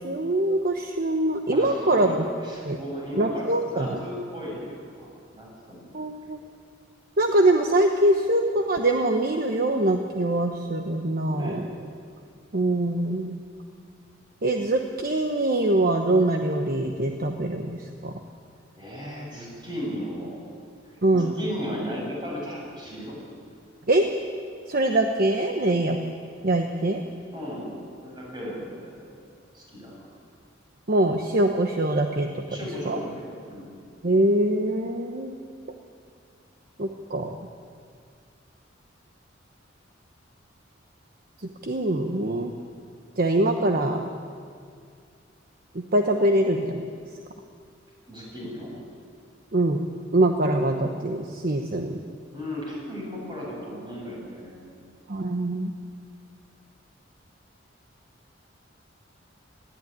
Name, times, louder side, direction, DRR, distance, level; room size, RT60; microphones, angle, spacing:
voice 1, 0.0-2.2 2.6-2.8 3.2-4.0 5.9-6.4 7.2-11.6 12.5-13.4 14.4-17.7 18.0-18.1 21.0-21.3 23.9-24.0 24.7-26.0 26.4-27.0 30.9-32.3 32.9-33.0 34.0-35.4 36.8-37.3 41.6-42.5 43.2-44.0 45.7-46.9 49.5-49.8 50.1-52.0 55.1-55.7, right 1 dB, 50° right, 4 dB, 1.1 m, -23 dB
voice 2, 1.5-2.1 2.4-5.9 11.2-11.6 18.8-20.4 20.9-23.2 27.3-29.2 29.5-30.1 32.5-33.7 48.1-48.7 52.3-54.8, equal, 25° right, -3 dB, 7.6 m, -36 dB
19.5 x 14.0 x 9.5 m, 2.2 s
head